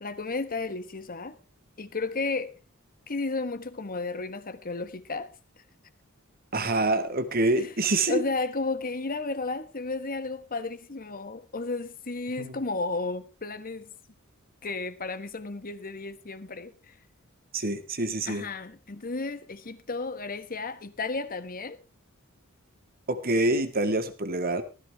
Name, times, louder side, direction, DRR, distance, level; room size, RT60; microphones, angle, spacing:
voice 1, 0.0-1.3 1.8-2.5 3.1-5.3 7.6-7.7 8.1-13.9 14.6-16.9 18.3-21.8, left 3 dB, 45° left, 1.3 m, -33 dB
voice 2, 6.5-8.2 12.4-12.6 17.5-18.4 23.1-24.6, right 2 dB, 45° right, 1.9 m, -26 dB
15.5 x 13.5 x 3.5 m
head